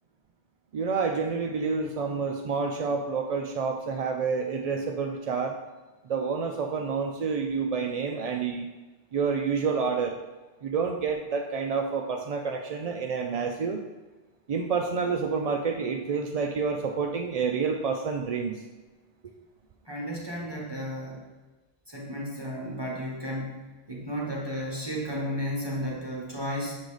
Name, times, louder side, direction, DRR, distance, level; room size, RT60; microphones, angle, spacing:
voice 1, 0.7-5.6 6.1-8.7 9.1-10.2 10.6-13.8 14.5-18.6, right 5 dB, 55° right, 3 dB, 0.4 m, -28 dB
voice 2, 19.9-21.2 21.9-26.8, equal, 25° right, -4 dB, 1.2 m, -33 dB
7.4 x 3.9 x 4.8 m, 1.2 s
omnidirectional pair, 1.2 m